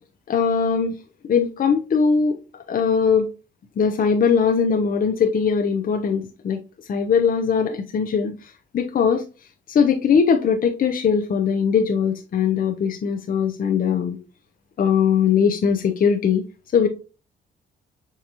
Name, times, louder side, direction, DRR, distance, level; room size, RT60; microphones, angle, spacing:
voice 1, 0.3-1.0 1.3-2.4 2.7-3.3 3.8-6.6 6.9-9.3 9.7-14.2 14.8-16.4 16.7-16.9, left 6 dB, 45° left, 4 dB, 0.6 m, -20 dB
5.9 x 2.8 x 2.8 m, 0.32 s
cardioid pair, 90°, 20 cm